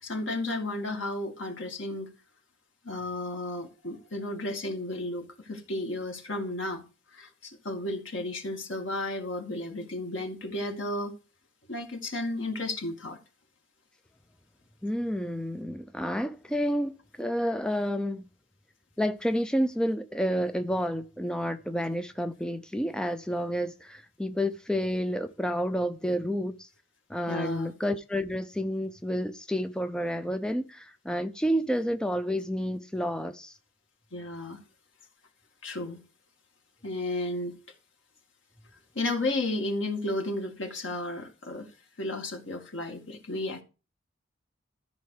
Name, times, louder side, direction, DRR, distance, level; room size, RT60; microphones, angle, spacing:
voice 1, 0.0-2.1 2.8-6.8 7.1-11.2 11.7-13.2 27.3-27.7 34.1-34.6 35.6-36.0 36.8-37.6 38.9-41.7 42.0-43.6, left 2 dB, 80° left, 2.2 m, -33 dB
voice 2, 14.8-18.3 19.0-26.7 27.1-33.6, equal, 5° left, 0.4 m, -30 dB
13.5 x 5.3 x 4.9 m
head